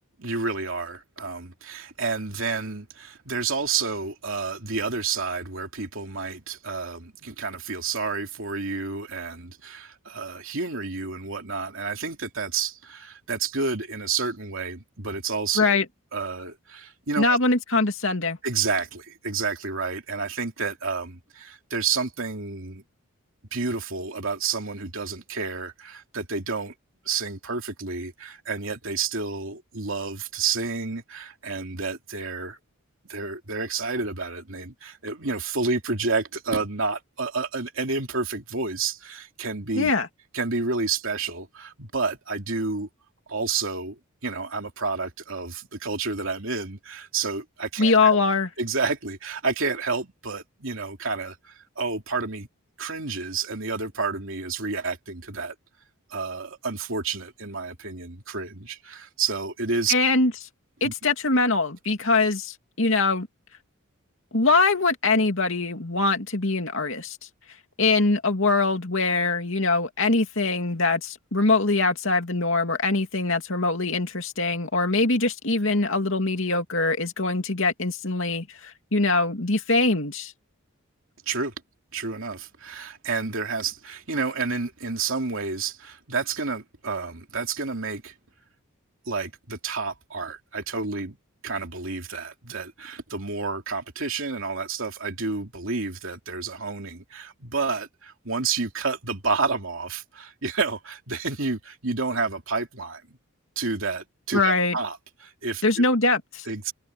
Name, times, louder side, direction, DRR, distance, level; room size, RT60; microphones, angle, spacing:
voice 1, 0.2-15.8 16.1-17.4 18.4-22.8 23.5-26.7 27.0-32.6 33.1-39.9 40.3-42.9 43.3-48.2 48.6-52.5 52.8-55.5 56.1-59.9 60.8-60.9 81.3-81.5 81.9-88.1 89.1-91.2 91.4-103.0 103.6-105.8 106.5-106.7, right 4 dB, 65° right, 2.8 m, -30 dB
voice 2, 17.2-18.4 39.8-40.1 47.8-48.5 59.9-60.3 60.8-63.3 64.3-67.2 67.8-80.3 104.3-104.8 105.6-106.5, left 3 dB, 65° left, 2.5 m, -23 dB
head